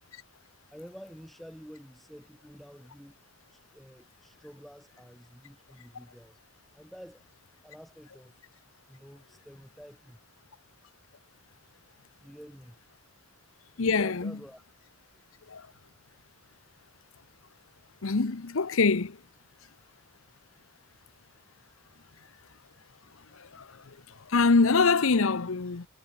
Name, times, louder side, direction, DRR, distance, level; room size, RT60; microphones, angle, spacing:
voice 1, 0.7-3.2 3.5-6.4 6.7-7.3 7.6-8.4 8.9-10.2 12.2-12.8 13.9-14.6 21.4-21.5, equal, ahead, 6.6 m, -49 dB
voice 2, 13.8-14.4 15.5-15.6 18.0-19.2 23.5-23.7 24.3-25.9, left 4 dB, 65° left, 0.8 m, -24 dB
head